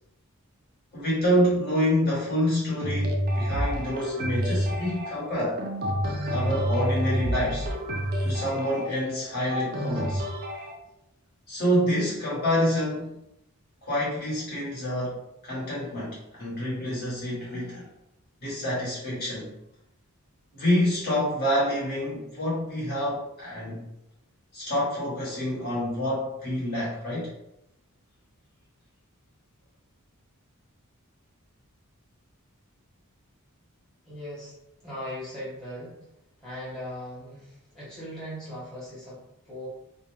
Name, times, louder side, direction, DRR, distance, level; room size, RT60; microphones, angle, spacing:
voice 1, 0.9-5.6 6.3-7.7 8.2-10.2 11.5-13.2 13.8-17.9 18.4-19.5 20.5-23.9 24.5-27.3, equal, 45° left, -7 dB, 1.1 m, -27 dB
sound 1, 2.8-10.7, equal, 45° right, 0.4 m, -29 dB
voice 2, 34.0-34.6 34.8-36.0 36.4-39.7, equal, 5° left, -10 dB, 1.0 m, -39 dB
2.4 x 2.1 x 3.1 m, 0.84 s
head